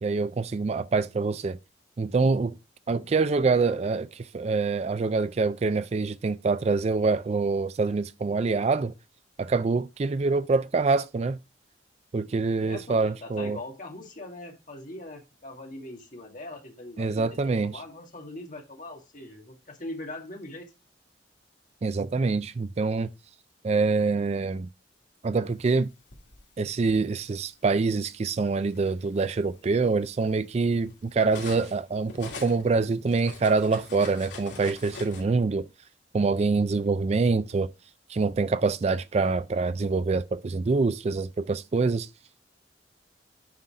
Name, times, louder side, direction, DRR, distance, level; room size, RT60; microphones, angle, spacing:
voice 1, 0.0-1.6 2.0-2.5 2.9-8.9 9.4-11.4 12.1-13.6 17.0-17.8 21.8-23.1 23.6-24.7 25.2-25.9 26.6-35.7 36.1-37.7 38.1-42.1, right 4 dB, 35° right, 0.3 m, -25 dB
voice 2, 12.6-20.7, left 2 dB, 45° left, 2.1 m, -41 dB
Cutlery silverware, 25.7-27.0 27.9-28.1 28.5-31.8 32.1-35.2, left 3 dB, 85° left, 2.8 m, -44 dB
9.6 x 3.9 x 4.8 m
head